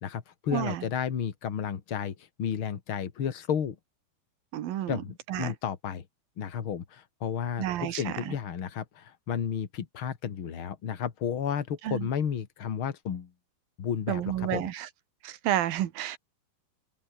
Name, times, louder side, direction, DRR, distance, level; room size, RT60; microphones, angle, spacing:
voice 1, 0.0-3.7 4.9-6.0 6.4-13.3 13.8-14.7, left 8 dB, 50° left, 1.6 m, -32 dB
voice 2, 0.5-0.8 4.5-5.0 5.3-5.5 7.6-8.3 11.8-12.1 14.1-14.9 15.2-16.2, right 12 dB, 65° right, 2.8 m, -30 dB
open air
omnidirectional pair, 5.2 m